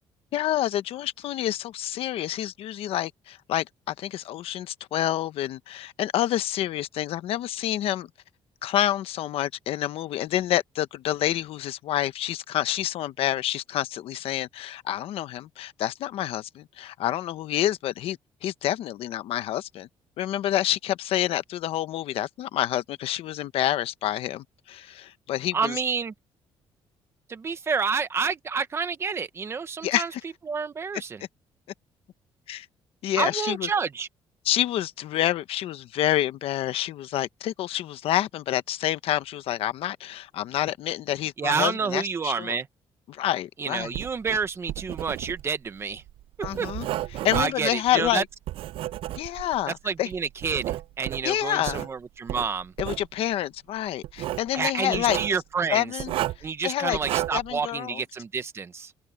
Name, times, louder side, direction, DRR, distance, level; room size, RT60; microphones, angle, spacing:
voice 1, 0.3-8.1 8.6-19.9 20.2-25.8 29.8-30.2 32.5-32.7 33.0-33.7 34.4-42.6 43.1-43.9 46.4-46.9 47.2-48.2 49.2-50.1 51.2-51.9 52.8-55.2 55.7-56.1 56.6-57.0 57.3-58.0, left 12 dB, 70° left, 1.0 m, -28 dB
voice 2, 25.5-26.1 27.3-30.1 30.5-31.2 33.2-34.1 41.4-42.7 43.6-46.0 46.4-46.7 47.3-48.2 49.8-52.7 54.5-55.9 56.4-58.9, right 5 dB, 25° right, 1.1 m, -29 dB
Writing, 43.8-49.6 50.1-51.9 52.3-53.1 54.0-54.5 54.9-55.4 56.0-56.5 56.9-57.5, right 14 dB, 65° right, 0.4 m, -32 dB
open air
cardioid pair, 175°, 10 cm